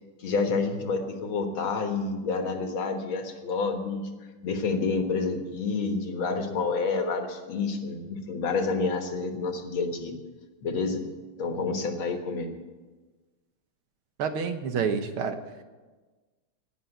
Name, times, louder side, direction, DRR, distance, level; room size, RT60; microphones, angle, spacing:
voice 1, 0.2-4.1 4.4-10.2 10.6-11.0 11.4-12.5, left 4 dB, 65° left, 5 dB, 2.2 m, -29 dB
voice 2, 14.2-15.4, right 6 dB, 75° right, 7 dB, 2.0 m, -28 dB
18.0 x 7.2 x 8.0 m, 1.3 s
omnidirectional pair, 2.4 m